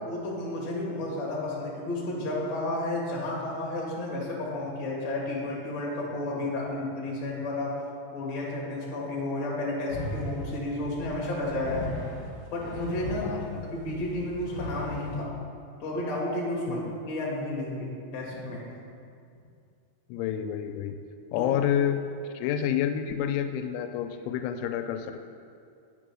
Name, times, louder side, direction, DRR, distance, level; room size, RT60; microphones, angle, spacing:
voice 1, 0.0-7.8 8.1-12.0 12.5-13.3 13.7-15.3 15.8-18.6 21.4-21.5, left 1 dB, 45° left, -4 dB, 2.6 m, -32 dB
sound 1, 9.9-15.3, left 1 dB, 70° left, 3.0 m, -38 dB
voice 2, 13.2-13.6 16.7-16.9 20.1-21.0 21.3-22.0 22.3-25.3, left 9 dB, 90° left, 8 dB, 2.9 m, -29 dB
8.6 x 6.4 x 6.2 m, 2.4 s
omnidirectional pair, 5.2 m